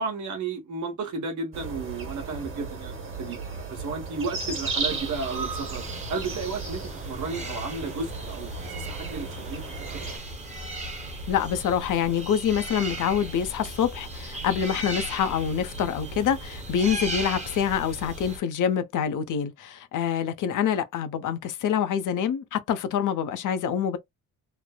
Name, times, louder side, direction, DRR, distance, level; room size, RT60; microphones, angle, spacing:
voice 1, 0.0-3.4 3.7-5.8 6.1-9.6 9.9-10.1, right 4 dB, 60° right, 1.1 m, -33 dB
sound 1, 1.5-10.2, right 4 dB, 35° right, 1.2 m, -35 dB
sound 2, 4.9-18.4, right 2 dB, 20° right, 0.9 m, -37 dB
voice 2, 11.3-24.0, left 8 dB, 60° left, 0.7 m, -26 dB
3.1 x 2.0 x 2.2 m
cardioid pair, 120°, 34 cm